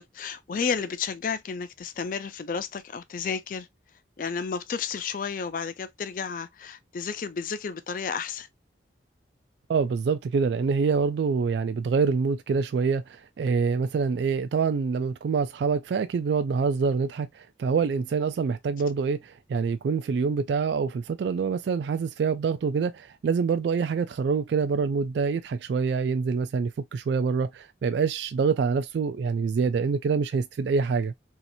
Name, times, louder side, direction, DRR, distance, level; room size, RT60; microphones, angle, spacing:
voice 1, 0.0-3.7 4.2-8.5, left 6 dB, 45° left, 0.3 m, -32 dB
voice 2, 9.7-31.1, right 5 dB, 70° right, 0.3 m, -26 dB
3.1 x 2.8 x 2.6 m
head